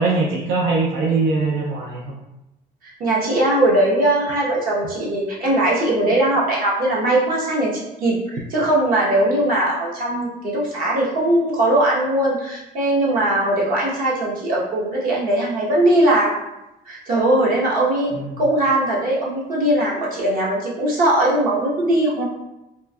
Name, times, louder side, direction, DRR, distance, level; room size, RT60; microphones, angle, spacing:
voice 1, 0.0-2.1 18.1-18.4, right 3 dB, 80° right, -3 dB, 0.5 m, -21 dB
voice 2, 2.8-16.3 16.9-22.2, right 1 dB, 55° right, -5 dB, 1.0 m, -20 dB
3.0 x 2.7 x 2.3 m, 0.93 s
cardioid pair, 110°, 17 cm